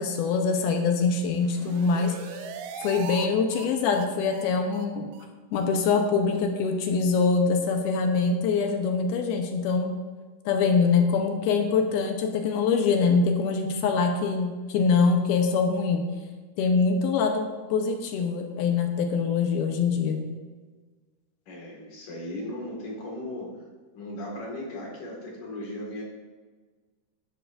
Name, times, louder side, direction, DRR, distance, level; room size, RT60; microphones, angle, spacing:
voice 1, 0.0-2.2 2.8-5.1 5.5-10.0 10.5-16.1 16.6-20.2, left 5 dB, 80° left, 4 dB, 2.7 m, -24 dB
sound 1, 1.2-3.3 3.5-3.7 3.9-4.1 4.3-4.5 4.7-4.9 5.1-5.3 5.5-5.6 5.9-6.0 6.3-6.4, right 7 dB, 75° right, 2.2 m, -40 dB
voice 2, 21.5-23.5 23.9-26.0, left 1 dB, 55° left, -2 dB, 3.2 m, -37 dB
13.0 x 11.0 x 2.6 m, 1.4 s
omnidirectional pair, 4.5 m